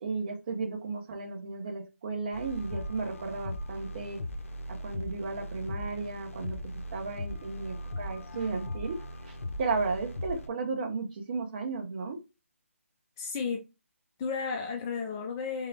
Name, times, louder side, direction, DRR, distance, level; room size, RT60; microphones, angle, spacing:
voice 1, 0.0-4.2 4.7-6.6 6.9-12.2, right 4 dB, 35° right, 0.9 m, -34 dB
sound 1, 2.3-10.5, left 1 dB, 60° left, 0.6 m, -39 dB
voice 2, 13.2-13.6 14.2-15.7, left 5 dB, 15° left, 0.4 m, -33 dB
3.6 x 3.3 x 2.8 m
figure-of-eight pair, 160°, 8 cm